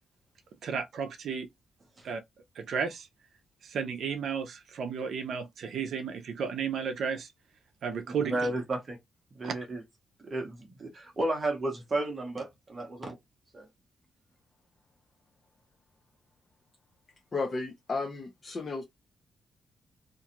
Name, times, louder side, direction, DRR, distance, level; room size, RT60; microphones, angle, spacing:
voice 1, 0.6-1.5 2.0-2.2 2.6-3.1 3.6-7.3 7.8-8.4 9.4-9.5, right 6 dB, 65° right, 0.5 m, -33 dB
voice 2, 8.1-9.0 9.3-9.8 10.2-13.1 13.5-13.7, right 2 dB, 30° right, 0.8 m, -33 dB
voice 3, 17.3-18.8, left 3 dB, 30° left, 0.6 m, -33 dB
2.5 x 2.3 x 2.8 m
wide cardioid pair, 160°, 0 cm